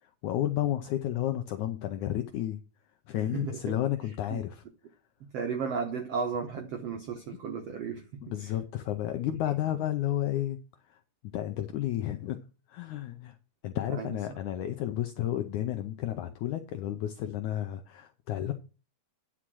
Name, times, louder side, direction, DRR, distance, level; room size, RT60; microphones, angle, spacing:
voice 1, 0.0-2.6 3.1-4.6 8.2-10.6 10.9-11.0 11.3-12.4 12.7-13.4 13.6-18.5, left 12 dB, 80° left, 1.7 m, -32 dB
voice 2, 3.3-3.8 4.3-4.4 5.3-8.5 13.9-14.4, right 5 dB, 85° right, 1.3 m, -34 dB
10.0 x 4.9 x 6.1 m
omnidirectional pair, 4.3 m